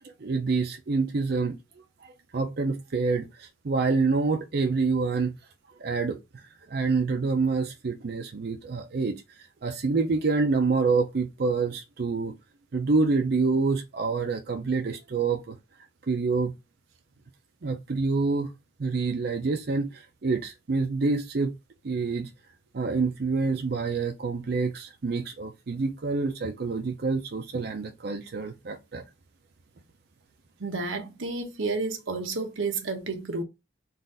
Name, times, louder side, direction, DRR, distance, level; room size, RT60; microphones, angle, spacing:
voice 1, 0.2-1.6 2.3-5.3 5.8-6.2 6.7-9.2 9.6-12.3 12.7-15.6 16.1-16.5 17.6-18.5 18.8-21.5 21.8-22.3 22.7-29.0, right 4 dB, 50° right, 0.5 m, -27 dB
voice 2, 30.6-33.4, right 3 dB, 85° right, 0.9 m, -31 dB
3.9 x 2.5 x 3.8 m
head